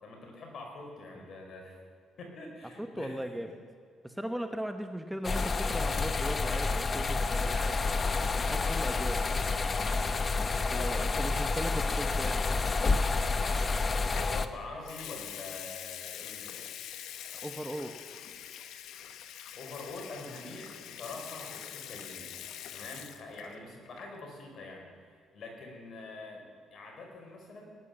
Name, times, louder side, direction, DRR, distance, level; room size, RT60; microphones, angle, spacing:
voice 1, 0.0-1.8 2.2-3.2 10.8-11.3 14.1-16.7 19.5-22.4 22.7-27.7, left 2 dB, 55° left, 1 dB, 5.1 m, -45 dB
voice 2, 2.8-3.5 4.0-7.8 8.3-9.3 10.3-12.8 17.4-18.0, equal, 5° right, 7 dB, 1.1 m, -38 dB
sound 1, 5.2-14.5, left 4 dB, 35° left, 0.9 m, -29 dB
Water tap faucet / Sink (filling or washing) / Liquid, 14.1-14.4 14.8-23.6 23.8-24.2, left 10 dB, 80° left, 0.9 m, -44 dB
18.5 x 11.0 x 7.2 m, 2.2 s
cardioid pair, 85°, 0 cm